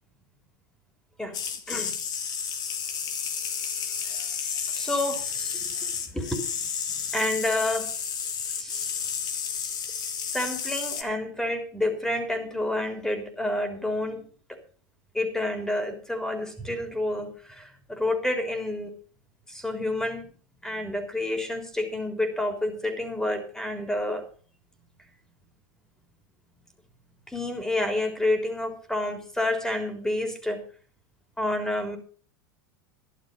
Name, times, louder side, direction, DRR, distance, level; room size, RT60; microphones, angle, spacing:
sound 1, 1.3-11.0, left 7 dB, 40° left, 2.3 m, -31 dB
voice 1, 1.7-2.0 4.0-6.5 7.1-7.9 8.6-8.9 10.3-14.6 15.1-18.9 19.5-20.3 20.6-24.2 27.3-30.6 31.4-32.0, left 1 dB, 5° left, 6 dB, 3.6 m, -29 dB
13.0 x 11.0 x 5.5 m, 0.41 s
hypercardioid pair, 95°, 10 cm